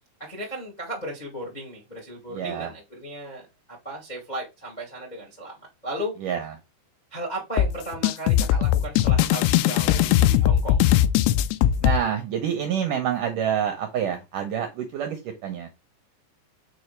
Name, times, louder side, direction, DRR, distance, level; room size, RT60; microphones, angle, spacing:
voice 1, 0.2-3.4 3.8-5.5 5.8-6.1 7.1-10.8, right 1 dB, 55° left, 0.4 m, -35 dB
voice 2, 2.3-2.7 6.2-6.5 11.8-15.7, right 8 dB, 80° right, 1.9 m, -27 dB
sound 1, 7.6-12.0, left 11 dB, 85° left, 2.7 m, -20 dB
6.2 x 4.9 x 3.3 m
omnidirectional pair, 4.9 m